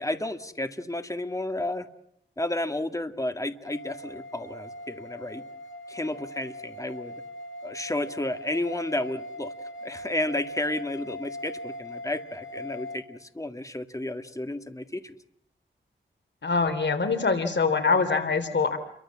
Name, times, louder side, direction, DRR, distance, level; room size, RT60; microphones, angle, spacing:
voice 1, 0.0-1.9 2.4-5.4 5.9-7.2 7.6-9.5 9.8-15.1, left 1 dB, 15° left, 8 dB, 2.0 m, -32 dB
sound 1, 3.6-13.0, left 1 dB, 80° left, 3.9 m, -40 dB
voice 2, 16.4-18.8, left 4 dB, 65° left, 9 dB, 3.3 m, -24 dB
30.0 x 24.0 x 7.4 m, 0.74 s
wide cardioid pair, 95°, 20 cm